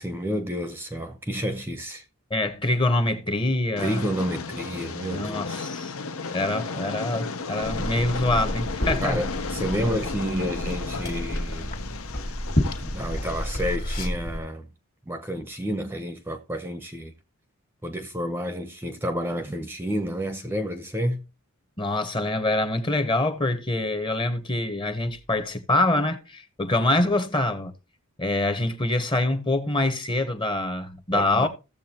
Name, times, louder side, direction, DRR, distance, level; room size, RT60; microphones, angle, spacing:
voice 1, 0.0-2.0 3.8-5.7 6.3-6.4 9.0-11.8 12.8-14.7 15.1-17.1 17.8-21.2 31.1-31.5, equal, 10° right, 0.7 m, -30 dB
voice 2, 2.3-4.1 5.1-6.0 6.3-9.2 21.8-27.7 28.2-31.5, left 2 dB, 20° left, 1.0 m, -25 dB
Train, 3.8-13.8, left 4 dB, 70° left, 0.8 m, -34 dB
Liquid, 7.6-14.4, equal, 40° left, 1.8 m, -30 dB
15.5 x 7.4 x 2.9 m
head